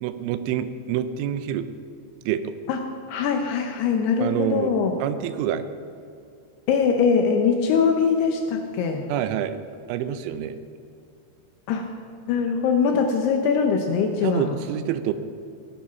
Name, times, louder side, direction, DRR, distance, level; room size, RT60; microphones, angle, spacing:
voice 1, 0.0-1.7 2.3-2.5 4.2-4.7 5.0-5.6 9.1-9.6 9.9-10.6 14.2-15.1, right 10 dB, 85° right, 11 dB, 3.0 m, -27 dB
voice 2, 3.1-4.9 6.7-9.0 11.7-11.9 12.3-14.6, left 6 dB, 75° left, 4 dB, 2.5 m, -22 dB
17.0 x 9.0 x 5.7 m, 2.4 s
omnidirectional pair, 5.5 m